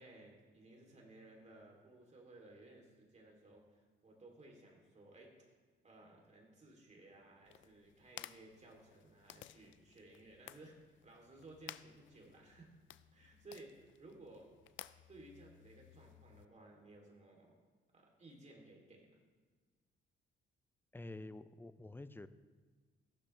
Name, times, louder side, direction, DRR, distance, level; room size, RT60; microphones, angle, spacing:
voice 1, 0.0-5.3 5.8-10.8 11.0-12.7 13.1-14.5 15.1-17.6 17.9-19.1, right 2 dB, 35° right, 0 dB, 3.3 m, -58 dB
sound 1, 7.5-16.5, left 13 dB, 75° left, 0.5 m, -57 dB
voice 2, 20.9-22.3, left 2 dB, 10° left, 13 dB, 0.6 m, -49 dB
14.5 x 12.0 x 3.4 m, 1.4 s
cardioid pair, 90°, 20 cm